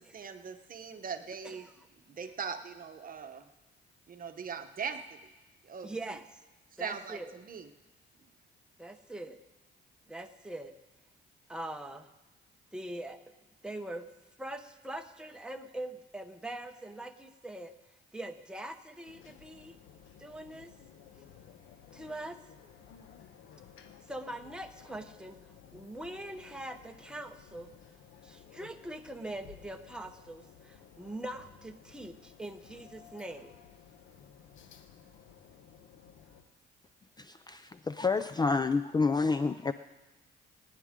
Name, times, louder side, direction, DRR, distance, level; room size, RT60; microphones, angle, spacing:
voice 1, 0.1-1.7 2.1-3.4 4.1-5.2 5.6-5.9 6.8-7.7, right 6 dB, 45° right, 7 dB, 1.0 m, -40 dB
voice 2, 5.8-6.3 6.8-7.3 8.8-9.4 10.1-10.7 11.5-12.1 12.7-13.2 13.6-14.1 14.4-17.7 18.1-19.8 20.2-20.7 21.9-22.4 24.1-25.4 25.7-27.7 28.2-33.6, right 1 dB, 5° right, 4 dB, 1.1 m, -42 dB
sound 1, 19.0-36.4, left 8 dB, 80° left, 1.0 m, -56 dB
voice 3, 37.2-39.7, left 4 dB, 20° left, 11 dB, 0.4 m, -29 dB
21.5 x 9.7 x 3.7 m, 1.1 s
cardioid pair, 90°, 20 cm